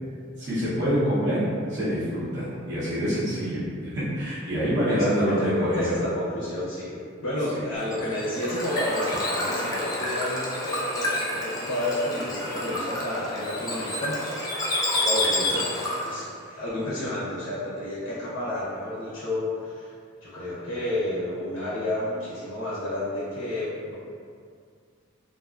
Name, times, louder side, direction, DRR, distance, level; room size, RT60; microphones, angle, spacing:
voice 1, 0.4-1.4 1.7-5.9 7.5-7.7, equal, 55° right, -10 dB, 0.8 m, -26 dB
voice 2, 4.9-14.6 15.0-19.9 20.2-23.9, left 1 dB, 70° left, -7 dB, 0.5 m, -31 dB
Bird / Water, 7.8-16.2, left 1 dB, 15° left, 0.3 m, -29 dB
2.4 x 2.4 x 2.3 m, 2.2 s
head